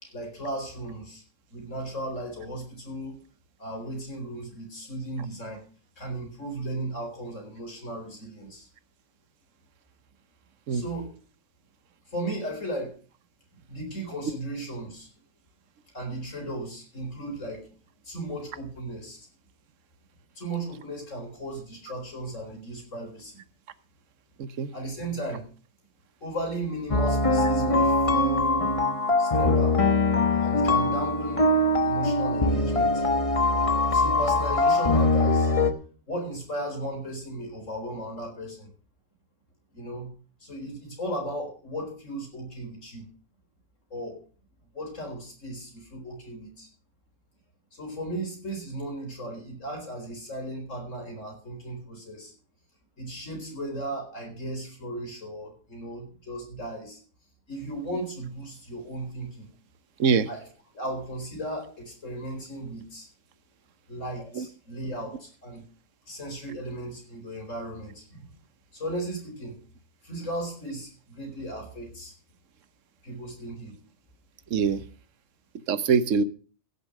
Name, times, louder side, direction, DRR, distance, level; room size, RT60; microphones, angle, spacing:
voice 1, 0.0-1.2 1.5-3.2 3.6-5.6 6.0-8.7 10.7-11.1 12.1-13.0 13.5-15.1 15.9-17.7 18.0-19.2 20.4-23.4 24.7-25.5 26.2-28.5 29.2-29.8 30.3-31.5 31.8-33.1 33.9-35.5 36.1-38.7 39.7-40.1 40.4-43.1 43.9-44.2 44.7-46.7 47.7-52.3 53.0-57.0 57.5-59.5 60.3-60.4 60.7-63.1 63.9-65.6 66.1-68.3 68.7-69.6 70.0-72.1 73.0-73.7, right 1 dB, 65° left, 2 dB, 4.7 m, -36 dB
voice 2, 24.4-24.7 60.0-60.3 64.4-64.5 74.5-74.8 75.7-76.2, right 6 dB, 70° right, 15 dB, 1.2 m, -23 dB
sound 1, 26.9-35.7, left 2 dB, 25° left, 1.1 m, -22 dB
16.0 x 6.9 x 6.4 m, 0.40 s
omnidirectional pair, 1.4 m